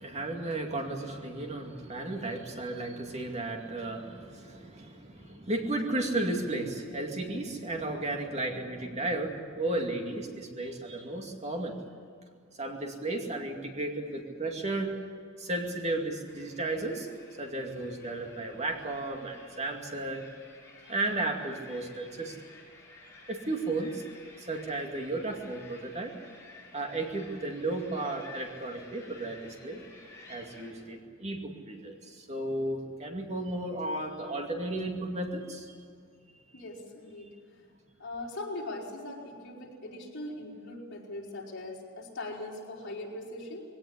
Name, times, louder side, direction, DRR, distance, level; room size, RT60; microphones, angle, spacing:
voice 1, 0.0-11.8 12.6-14.9 15.4-17.1 17.4-20.3 20.9-22.4 23.3-24.0 24.4-26.1 26.7-29.8 30.3-35.7, right 2 dB, 30° right, 2 dB, 2.4 m, -34 dB
sound 1, 16.2-30.7, left 3 dB, 15° left, 5.8 m, -53 dB
voice 2, 36.5-37.3 38.0-43.6, left 2 dB, 60° left, -3 dB, 5.1 m, -40 dB
21.0 x 17.5 x 9.8 m, 2.1 s
head